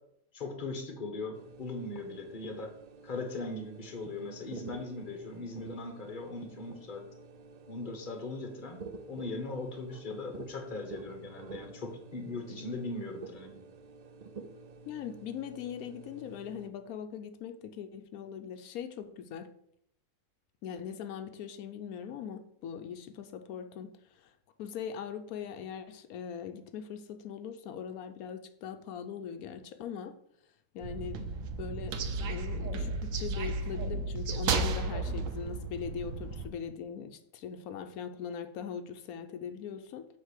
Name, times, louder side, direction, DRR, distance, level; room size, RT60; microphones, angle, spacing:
voice 1, 0.3-2.7 3.0-7.0 7.7-13.6, left 3 dB, 35° left, 4 dB, 1.3 m, -39 dB
sound 1, 1.3-16.7, right 4 dB, 90° right, 0.3 m, -50 dB
voice 2, 14.9-19.5 20.6-24.3 24.6-30.1 30.7-31.3 31.6-40.1, left 8 dB, 85° left, 7 dB, 1.1 m, -41 dB
sound 2, 30.8-36.5, right 3 dB, 70° right, 1.1 m, -33 dB
8.0 x 3.3 x 6.4 m, 0.72 s
omnidirectional pair, 1.5 m